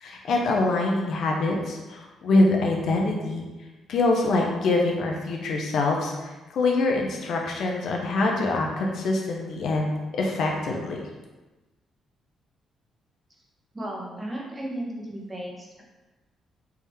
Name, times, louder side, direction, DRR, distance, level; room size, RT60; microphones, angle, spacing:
voice 1, 0.0-3.5 3.9-11.0, left 2 dB, 70° left, 0 dB, 0.6 m, -24 dB
voice 2, 13.7-15.7, right 1 dB, 20° right, -2 dB, 0.9 m, -34 dB
3.4 x 2.7 x 3.4 m, 1.1 s
cardioid pair, 90°, 0 cm